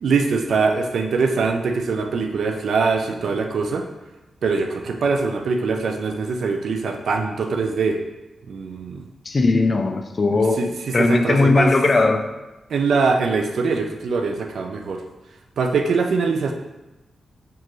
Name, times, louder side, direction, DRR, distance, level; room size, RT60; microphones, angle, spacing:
voice 1, 0.0-3.9 4.4-8.0 8.5-9.1 10.3-11.7 12.7-15.0 15.6-16.5, right 4 dB, 75° right, 4 dB, 0.4 m, -22 dB
voice 2, 9.3-12.3, left 3 dB, 40° left, 6 dB, 0.3 m, -19 dB
4.5 x 2.6 x 3.0 m, 1.0 s
cardioid pair, 95°, 0 cm